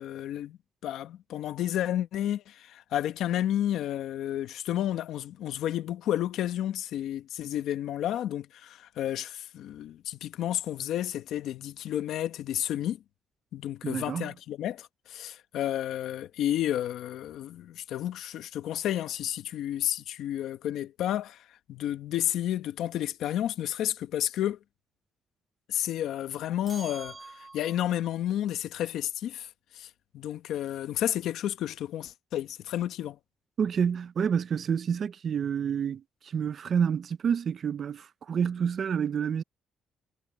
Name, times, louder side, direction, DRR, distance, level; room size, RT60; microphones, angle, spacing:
voice 1, 0.0-13.0 13.5-24.6 25.7-29.5 29.7-29.9 30.1-33.2, left 11 dB, 80° left, 1.2 m, -31 dB
voice 2, 13.8-14.3 33.6-39.4, right 7 dB, 45° right, 0.4 m, -28 dB
sound 1, 26.7-28.0, right 3 dB, 20° right, 1.9 m, -46 dB
cardioid pair, 135°, 0 cm